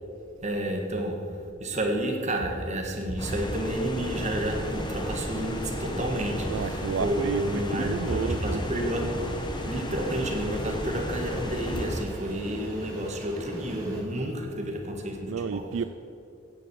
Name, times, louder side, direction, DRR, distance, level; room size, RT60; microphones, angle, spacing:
voice 1, 0.4-1.3 1.6-9.2 9.6-15.7, right 1 dB, 35° right, 2 dB, 1.8 m, -30 dB
sound 1, 3.2-12.0, left 1 dB, 25° left, 1.1 m, -34 dB
Fixed-wing aircraft airplane, 4.0-14.0, right 1 dB, 15° right, 3.9 m, -41 dB
voice 2, 6.5-8.6 8.9-9.6 15.3-15.8, right 6 dB, 70° right, 11 dB, 0.4 m, -32 dB
16.0 x 7.7 x 7.2 m, 2.7 s
head